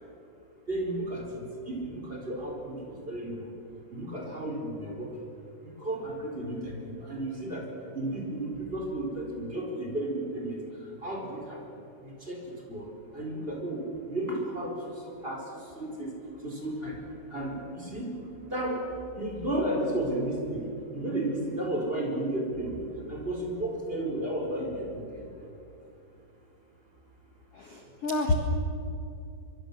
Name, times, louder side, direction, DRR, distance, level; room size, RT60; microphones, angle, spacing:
voice 1, 0.7-3.5 3.9-5.1 5.6-7.6 7.9-10.6 11.0-11.6 12.0-12.4 12.7-12.9 13.1-14.8 15.0-15.4 15.8-16.1 16.4-17.0 17.3-18.2 18.5-18.9 19.1-20.6 20.9-25.2, right 1 dB, 15° right, 0 dB, 4.4 m, -33 dB
voice 2, 27.5-28.3, left 2 dB, 50° left, 3 dB, 1.8 m, -28 dB
25.5 x 23.0 x 7.5 m, 2.7 s
omnidirectional pair, 4.9 m